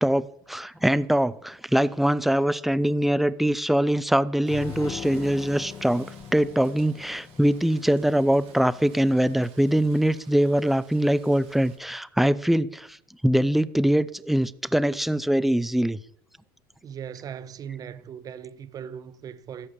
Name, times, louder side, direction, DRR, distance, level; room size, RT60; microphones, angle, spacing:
voice 1, 0.0-13.0 13.2-16.0, right 1 dB, ahead, 0.5 m, -23 dB
Rain, 4.4-11.8, right 6 dB, 50° right, 4.5 m, -54 dB
sound 1, 4.5-9.4, left 8 dB, 30° left, 0.8 m, -42 dB
voice 2, 16.8-19.7, right 8 dB, 30° right, 1.0 m, -38 dB
13.5 x 11.0 x 8.7 m
supercardioid pair, 130°, 12 cm